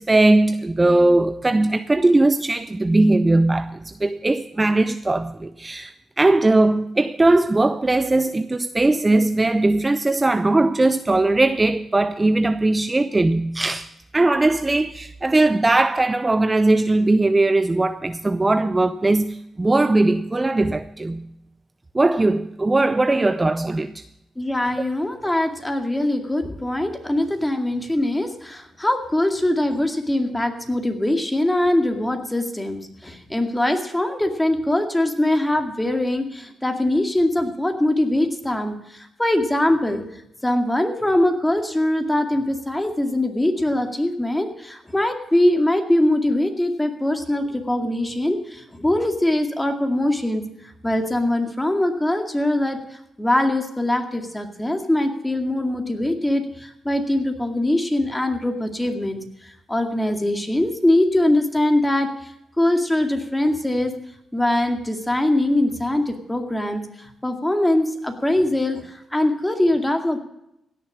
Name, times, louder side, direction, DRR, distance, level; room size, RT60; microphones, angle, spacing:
voice 1, 0.0-21.3 21.9-24.0, right 2 dB, 20° right, 0.5 m, -19 dB
voice 2, 24.4-40.0 40.4-50.4 50.8-52.8 53.2-62.3 62.6-63.9 64.3-70.2, left 1 dB, 10° left, 2.2 m, -22 dB
17.0 x 6.7 x 8.5 m
cardioid pair, 75°, 0 cm